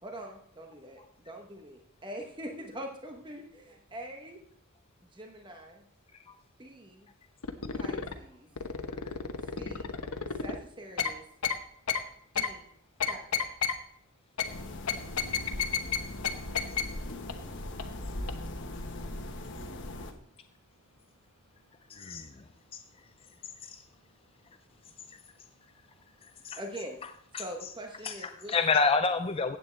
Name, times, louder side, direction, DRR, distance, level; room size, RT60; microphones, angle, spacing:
voice 1, 0.0-4.4 5.1-5.8 6.6-7.1 7.7-8.5 9.6-10.0 10.4-11.2 12.3-12.6 13.0-13.5 26.6-27.0 27.3-28.5, right 1 dB, 20° right, 3 dB, 1.0 m, -43 dB
sound 1, 7.4-8.1 8.6-10.6 11.0-11.1 11.4-11.6 11.9-12.0 12.4-12.5 13.0-13.7 14.4-14.5 14.9-16.0 16.2-16.3 16.5-16.8 17.3-17.4 17.8-17.9 18.3-18.4, left 7 dB, 80° left, 1.0 m, -30 dB
sound 2, 14.4-20.1, left 1 dB, 55° left, 1.2 m, -39 dB
voice 2, 20.2-20.6 20.9-21.3 21.6-21.7 22.6-22.7 24.0-24.3 25.1-25.2 25.7-26.1, right 3 dB, 70° right, 0 dB, 1.3 m, -70 dB
voice 3, 21.9-22.4 22.7-22.8 23.6-23.8 26.4-26.6 27.3-27.4 28.0-29.6, left 4 dB, 25° left, 9 dB, 0.4 m, -28 dB
15.0 x 8.6 x 3.3 m, 0.68 s
head